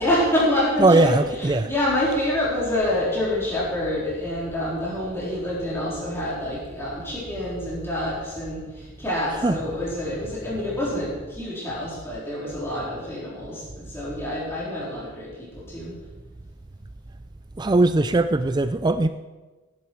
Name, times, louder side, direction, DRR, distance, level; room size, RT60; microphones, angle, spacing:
voice 1, 0.0-15.9, left 1 dB, 10° left, -7 dB, 3.9 m, -27 dB
voice 2, 0.8-1.7 9.4-9.6 17.6-19.1, right 2 dB, 20° right, 10 dB, 0.4 m, -19 dB
17.0 x 10.5 x 4.6 m, 1.2 s
head